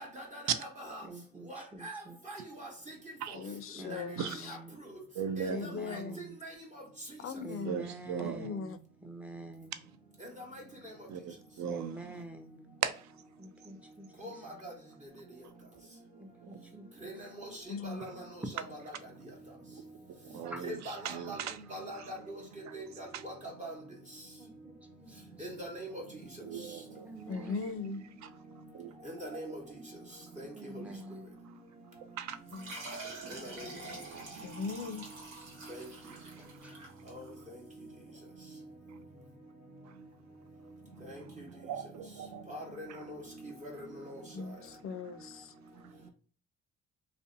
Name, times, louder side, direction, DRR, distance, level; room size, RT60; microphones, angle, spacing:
voice 1, 0.0-1.0 1.5-2.0 2.3-2.7 3.9-4.0 4.5-4.6 5.4-6.0 6.4-6.5 10.2-10.4 14.2-14.7 17.0-17.5 17.8-18.3 18.5-18.8 20.6-21.4 21.7-22.4 22.7-23.7 25.4-26.0 29.0-29.6 30.4-30.7 33.3-33.5 35.7-35.9 37.1-37.2 41.0-41.4 42.5-44.2, right 1 dB, 25° right, 1.0 m, -43 dB
voice 2, 1.0-2.2 3.7-4.8 5.5-6.4 7.4-9.9 11.7-12.7 13.4-14.4 16.2-17.3 20.3-20.6 24.4-25.5 27.0-28.2 30.5-31.4 36.4-36.8, right 2 dB, 5° right, 0.5 m, -48 dB
voice 3, 3.3-4.6 5.5-6.2 7.2-7.9 8.2-8.8 17.7-18.3 27.3-28.0 32.5-32.7 33.8-34.0 34.4-35.1 44.3-45.5, left 5 dB, 45° left, 0.4 m, -39 dB
voice 4, 5.2-5.6 7.6-8.5 11.1-12.1 12.8-13.1 20.2-20.8 21.0-21.6 21.9-22.1 22.7-22.8 23.1-23.2 26.4-27.1 28.7-28.9 32.2-32.4 32.7-33.2 33.8-34.6 36.1-36.2 41.6-42.4, right 8 dB, 65° right, 0.5 m, -38 dB
sound 1, 32.5-37.6, right 2 dB, 80° right, 1.1 m, -46 dB
2.5 x 2.1 x 2.5 m
cardioid pair, 90°, 30 cm